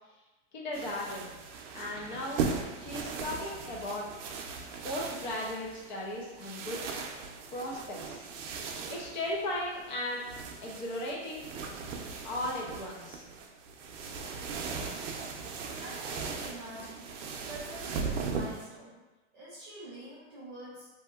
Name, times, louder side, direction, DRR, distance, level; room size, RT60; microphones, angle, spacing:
voice 1, 0.5-1.3 1.7-2.4 2.8-4.1 4.8-6.8 7.5-8.3 8.9-10.2 10.6-11.5 12.2-13.2, left 1 dB, 40° left, -2 dB, 0.6 m, -36 dB
sound 1, 0.7-18.7, right 5 dB, 80° right, 0.5 m, -39 dB
voice 2, 15.8-17.1 17.4-19.0 19.3-20.9, right 1 dB, 10° right, -15 dB, 0.4 m, -46 dB
2.8 x 2.7 x 2.3 m, 1.1 s
supercardioid pair, 180°, 36 cm